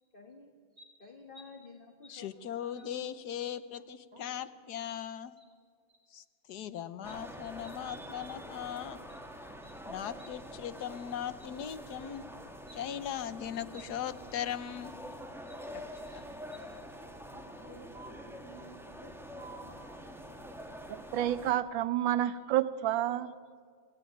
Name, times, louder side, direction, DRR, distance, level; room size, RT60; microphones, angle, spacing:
voice 1, 0.1-0.5 1.0-3.1, left 5 dB, 30° left, 3 dB, 1.6 m, -51 dB
voice 2, 2.1-5.3 6.1-9.0 9.9-12.2 12.7-14.9 15.7-15.8 16.1-16.2, left 9 dB, 60° left, 13 dB, 1.4 m, -39 dB
sound 1, 7.0-21.5, equal, ahead, 1.6 m, -46 dB
voice 3, 15.5-16.8 17.3-19.9, right 2 dB, 45° right, -1 dB, 3.7 m, -53 dB
voice 4, 20.9-23.3, right 12 dB, 75° right, 14 dB, 1.5 m, -29 dB
27.0 x 16.5 x 9.4 m, 2.1 s
omnidirectional pair, 2.1 m